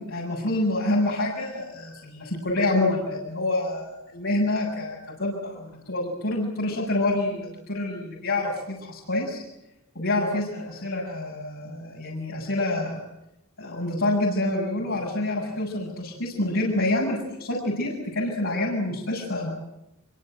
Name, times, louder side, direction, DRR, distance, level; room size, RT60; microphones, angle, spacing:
voice 1, 0.0-9.4 9.9-13.0 13.6-19.5, left 2 dB, 65° left, -3 dB, 7.6 m, -27 dB
27.0 x 25.5 x 8.0 m, 0.86 s
head